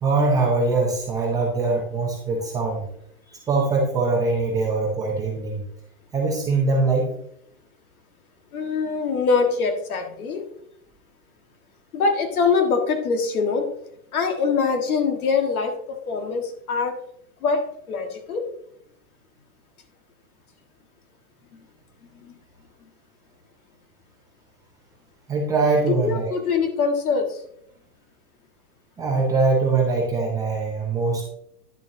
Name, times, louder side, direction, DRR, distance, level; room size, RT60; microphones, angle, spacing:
voice 1, 0.0-2.9 3.3-5.6 6.1-7.1 25.3-26.3 29.0-31.3, right 3 dB, 10° right, -2 dB, 0.6 m, -22 dB
voice 2, 8.5-10.5 11.9-13.7 14.1-15.7 16.1-16.9 17.4-18.4 22.1-22.3 25.9-27.4, left 5 dB, 65° left, 4 dB, 1.8 m, -23 dB
10.5 x 7.0 x 2.8 m, 0.72 s
hypercardioid pair, 160°, 46 cm